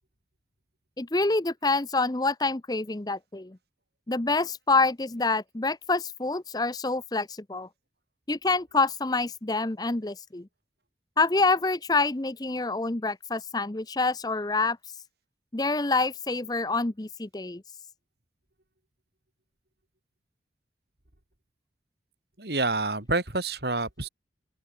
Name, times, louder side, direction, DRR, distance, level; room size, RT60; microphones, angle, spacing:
voice 1, 1.0-3.6 4.1-7.7 8.3-10.5 11.2-14.8 15.5-17.6, left 3 dB, 20° left, 0.8 m, -27 dB
voice 2, 22.4-24.1, right 3 dB, 60° right, 3.5 m, -28 dB
open air
head